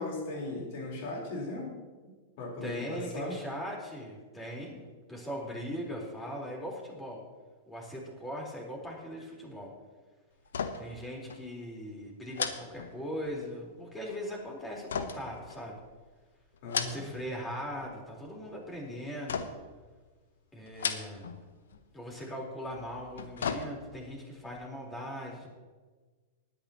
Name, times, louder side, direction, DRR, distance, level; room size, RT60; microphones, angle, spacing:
voice 1, 0.0-1.8 2.4-3.4 16.6-17.1, left 2 dB, 55° left, -1 dB, 4.1 m, -37 dB
voice 2, 2.6-7.2 7.7-9.7 10.8-15.8 16.8-19.5 20.5-21.3 21.9-25.5, equal, 15° left, -2 dB, 4.2 m, -40 dB
sound 1, 10.4-11.0 11.3-11.5 12.3-13.4 14.9-16.0 16.5-17.3 17.6-18.2 19.3-19.8 20.7-21.4 21.7-21.8 22.9-24.1 24.5-24.6, left 6 dB, 70° left, 0.9 m, -36 dB
19.5 x 10.0 x 3.0 m, 1.4 s
figure-of-eight pair, 100°, 0 cm